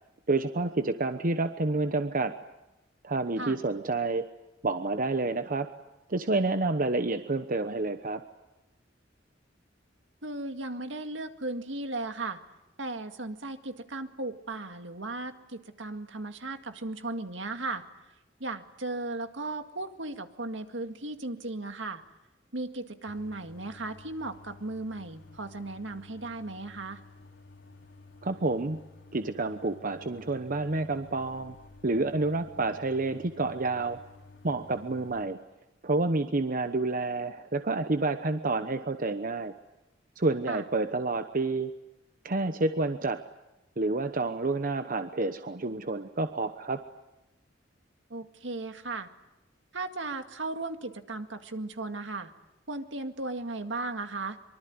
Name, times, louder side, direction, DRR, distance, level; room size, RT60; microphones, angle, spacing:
voice 1, 0.3-2.3 3.0-4.3 4.6-5.7 6.1-8.2 28.2-28.8 29.1-31.6 31.8-34.0 34.4-35.4 35.8-39.5 40.2-41.7 42.2-43.2 43.8-46.8, right 3 dB, 45° right, 9 dB, 1.0 m, -29 dB
voice 2, 10.2-12.4 12.8-17.8 18.4-22.0 22.5-27.0 40.5-40.6 48.1-49.1 49.7-52.3 52.7-54.4, right 2 dB, 75° right, 7 dB, 2.1 m, -36 dB
sound 1, 23.1-35.2, left 3 dB, 70° left, 4.3 m, -53 dB
24.5 x 24.0 x 9.6 m, 0.97 s
head